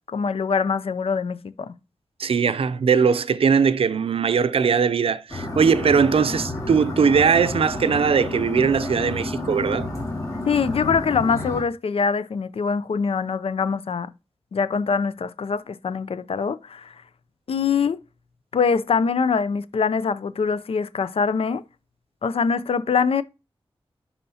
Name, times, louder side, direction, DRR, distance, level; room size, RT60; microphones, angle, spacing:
voice 1, 0.1-1.7 10.5-14.1 14.5-16.9 17.5-18.0 18.5-21.6 22.2-23.2, left 5 dB, 75° left, 0.5 m, -23 dB
voice 2, 2.2-9.9, right 6 dB, 75° right, 0.5 m, -20 dB
sound 1, 5.3-11.6, left 2 dB, 35° left, 2.2 m, -30 dB
11.0 x 4.2 x 2.8 m
wide cardioid pair, 120°, 10 cm